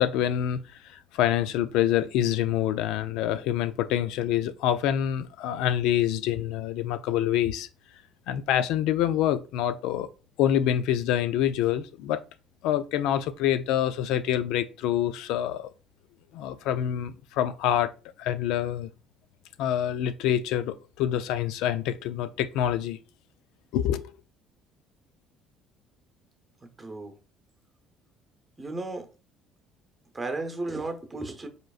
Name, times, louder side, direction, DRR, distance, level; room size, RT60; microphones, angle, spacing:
voice 1, 0.0-7.7 8.3-10.1 10.4-12.2 12.6-15.7 16.3-17.9 18.2-18.9 19.6-23.0 23.7-24.1, left 11 dB, 80° left, 0.4 m, -26 dB
voice 2, 26.8-27.1 28.6-29.1 30.1-31.5, right 2 dB, 15° right, 0.8 m, -34 dB
5.0 x 4.4 x 2.4 m
cardioid pair, 135°, 0 cm